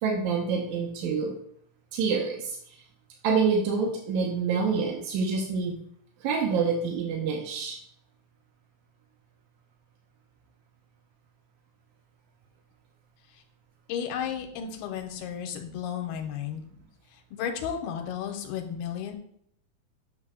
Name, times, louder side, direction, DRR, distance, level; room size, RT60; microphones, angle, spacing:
voice 1, 0.0-1.3 1.9-2.8 3.2-5.8 6.2-7.8, right 5 dB, 75° right, 0 dB, 1.8 m, -27 dB
voice 2, 13.9-16.6 17.1-19.2, left 8 dB, 85° left, 4 dB, 2.6 m, -33 dB
8.4 x 6.2 x 2.3 m, 0.69 s
omnidirectional pair, 4.5 m